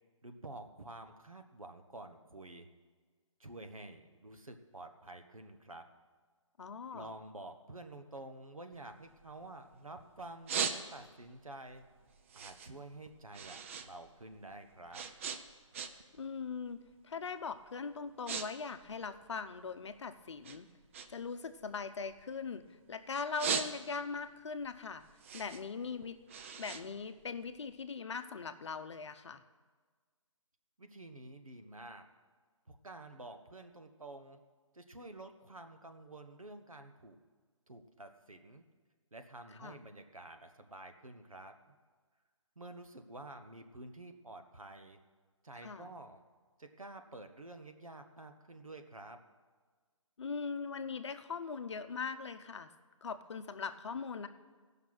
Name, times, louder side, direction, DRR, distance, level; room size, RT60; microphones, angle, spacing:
voice 1, 0.2-2.7 3.4-5.8 6.9-11.8 12.3-15.0 30.8-32.0 32.7-34.4 34.7-37.2 37.7-38.6 39.1-41.7 42.6-45.0 45.4-46.2 46.6-49.2, right 2 dB, 90° right, 7 dB, 1.2 m, -50 dB
voice 2, 6.6-7.1 16.1-20.7 21.1-25.0 25.3-26.2 26.6-29.4 39.6-39.8 45.6-45.9 50.2-52.7 53.0-54.3, left 5 dB, 60° left, 9 dB, 0.7 m, -41 dB
sound 1, 8.7-9.8 10.2-11.3 11.7-13.9 14.2-16.2 16.5-16.8 17.4-17.6 17.9-18.5 18.7-20.0 20.4-22.8 23.1-24.2 24.6-27.7, right 6 dB, 25° right, 0.5 m, -39 dB
15.5 x 5.8 x 6.1 m, 1.5 s
figure-of-eight pair, 145°, 17 cm